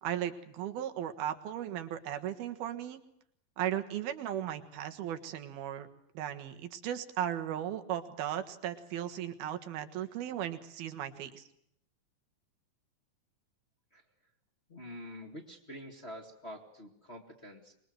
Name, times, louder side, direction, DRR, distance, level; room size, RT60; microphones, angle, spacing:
voice 1, 0.0-3.0 3.6-5.9 6.2-11.5, right 11 dB, 90° right, 7 dB, 3.5 m, -36 dB
voice 2, 14.7-17.7, equal, 25° left, 2 dB, 1.7 m, -46 dB
25.0 x 21.5 x 7.8 m, 0.73 s
omnidirectional pair, 4.2 m